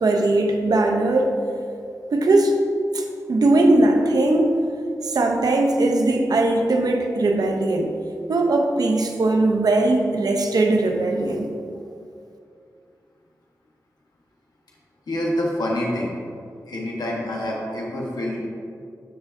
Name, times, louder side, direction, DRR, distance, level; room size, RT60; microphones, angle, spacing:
voice 1, 0.0-1.3 2.1-2.6 2.9-4.6 5.0-7.9 8.3-11.5, right 2 dB, 75° right, 3 dB, 0.8 m, -19 dB
voice 2, 15.1-16.2 16.7-18.4, left 1 dB, 90° left, -3 dB, 1.4 m, -26 dB
12.0 x 4.8 x 2.7 m, 2.4 s
wide cardioid pair, 80°, 7 cm